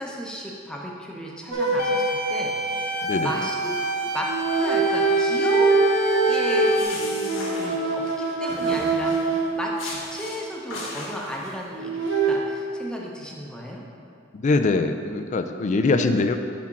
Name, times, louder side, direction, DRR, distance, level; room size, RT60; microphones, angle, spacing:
voice 1, 0.0-3.7 4.1-5.7 6.2-13.8 15.9-16.3, equal, 5° left, -2 dB, 0.8 m, -35 dB
sound 1, 1.5-3.1 4.2-10.3 11.7-12.4, right 3 dB, 75° right, 0.9 m, -23 dB
sound 2, 1.8-6.8, equal, 60° left, 1.1 m, -29 dB
voice 2, 3.0-3.4 14.3-16.4, left 3 dB, 40° left, 7 dB, 0.4 m, -22 dB
sound 3, 6.4-8.1 8.5-9.3 9.8-10.4 10.7-11.5, left 2 dB, 85° left, 1.6 m, -37 dB
6.1 x 4.3 x 5.9 m, 2.5 s
head